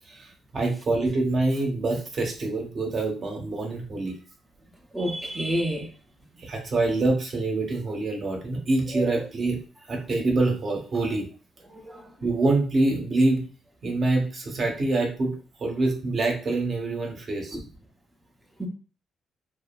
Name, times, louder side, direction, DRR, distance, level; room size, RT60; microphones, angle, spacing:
voice 1, 0.1-4.1 6.4-9.6 9.9-11.3 12.2-13.5 13.8-17.6, right 2 dB, 50° right, 0.8 m, -25 dB
voice 2, 4.9-5.9 8.9-9.1 11.8-12.1 17.5-17.6 18.6-18.7, equal, 5° right, 0.6 m, -28 dB
2.7 x 2.4 x 2.2 m
cardioid pair, 90°, 0 cm